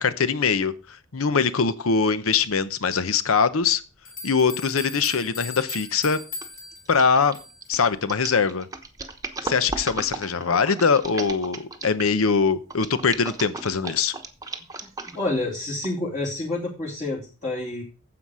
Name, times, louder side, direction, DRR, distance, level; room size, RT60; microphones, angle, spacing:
voice 1, 0.0-0.7 1.1-3.8 4.2-6.2 6.9-7.4 7.7-8.7 9.4-14.1, left 5 dB, 80° left, 14 dB, 0.8 m, -22 dB
sound 1, 4.1-7.8, left 4 dB, 65° left, 4.7 m, -38 dB
sound 2, 5.7-6.0 6.3-12.2 12.7-15.4 15.8-15.9, right 3 dB, 15° right, 1.0 m, -35 dB
voice 2, 15.1-17.8, left 2 dB, 35° left, -5 dB, 2.8 m, -28 dB
9.7 x 7.8 x 4.9 m, 0.34 s
head